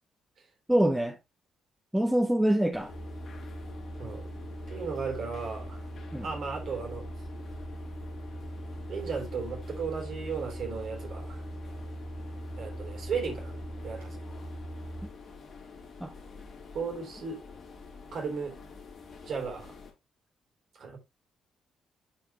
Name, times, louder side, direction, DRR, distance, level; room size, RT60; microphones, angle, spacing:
voice 1, 0.7-1.2 1.9-2.9 6.1-6.3 16.0-16.1, right 1 dB, 5° right, 1.5 m, -25 dB
sound 1, 2.7-19.9, left 4 dB, 40° left, 3.3 m, -48 dB
sound 2, 2.9-15.1, right 1 dB, 65° left, 3.2 m, -41 dB
voice 2, 4.7-5.9 6.2-7.0 8.9-11.4 12.6-13.6 13.8-14.2 16.7-17.4 18.1-18.6 19.2-19.7 20.7-21.0, right 5 dB, 55° right, 3.3 m, -35 dB
10.5 x 4.8 x 3.0 m
figure-of-eight pair, 40°, 0 cm